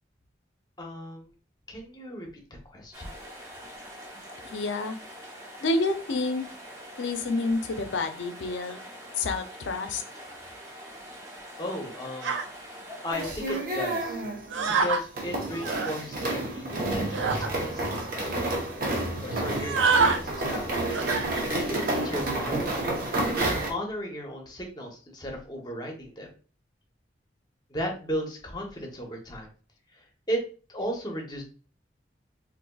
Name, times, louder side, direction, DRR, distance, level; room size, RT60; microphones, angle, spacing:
voice 1, 0.8-1.3 1.7-2.3 2.7-3.1 11.6-12.4 13.0-14.2 14.7-18.4 19.2-20.8 21.5-22.8 23.3-26.3 27.7-29.5 30.3-30.4 30.7-31.4, equal, 20° left, 1 dB, 0.7 m, -35 dB
sound 1, 2.9-13.3, equal, 15° right, 0.7 m, -44 dB
voice 2, 4.4-4.9 5.6-6.5 7.0-8.8 9.2-10.0, left 3 dB, 85° left, 8 dB, 0.5 m, -28 dB
sound 2, 12.2-12.5 13.5-13.6 14.5-15.0 15.5-15.9 17.1-17.5 18.1-18.2 18.4-18.6 19.5-20.2 20.9-21.3 21.8-22.1, right 4 dB, 85° right, 0.4 m, -26 dB
sound 3, 13.1-23.7, right 1 dB, 50° right, 0.7 m, -30 dB
4.0 x 2.6 x 2.2 m, 0.38 s
head